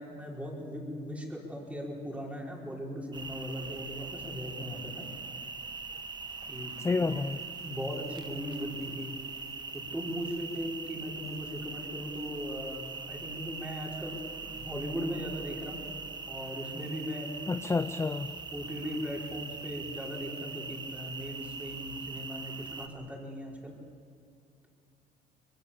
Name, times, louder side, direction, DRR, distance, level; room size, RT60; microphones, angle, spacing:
voice 1, 0.0-5.1 6.5-6.7 7.6-9.1 9.7-14.2 14.5-15.8 16.3-17.6 18.5-23.7, equal, 10° right, 5.0 m, -38 dB
sound 1, 3.1-22.9, right 4 dB, 25° right, 1.6 m, -41 dB
voice 2, 6.8-7.4 17.5-18.3, left 4 dB, 15° left, 0.6 m, -29 dB
24.5 x 21.5 x 7.2 m
cardioid pair, 110°, 17 cm